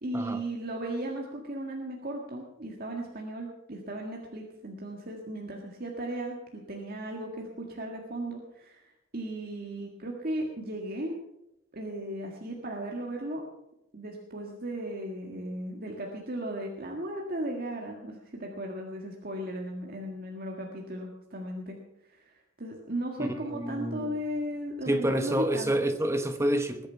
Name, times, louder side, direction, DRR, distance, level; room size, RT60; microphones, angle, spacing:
voice 1, 0.0-11.2 11.7-13.4 13.9-21.8 22.1-25.7, right 1 dB, 45° right, 0 dB, 1.8 m, -36 dB
voice 2, 23.2-24.1 24.9-26.9, right 1 dB, 15° right, 7 dB, 1.0 m, -28 dB
20.5 x 9.0 x 5.7 m, 0.87 s
head